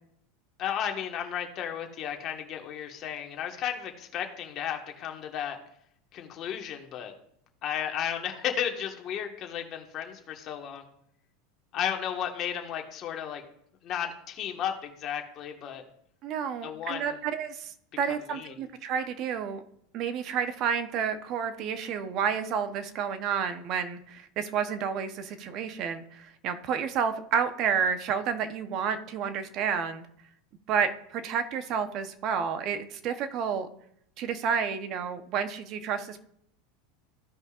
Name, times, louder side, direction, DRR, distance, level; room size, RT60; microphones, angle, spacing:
voice 1, 0.6-5.6 6.1-7.1 7.6-10.8 11.7-13.4 13.8-15.8 16.6-17.2 18.0-18.5, left 9 dB, 40° left, 3 dB, 1.5 m, -34 dB
voice 2, 16.2-19.6 19.9-30.1 30.7-33.7 34.2-36.2, right 7 dB, 45° right, 9 dB, 0.9 m, -30 dB
15.0 x 5.3 x 2.5 m, 0.70 s
supercardioid pair, 125°, 0 cm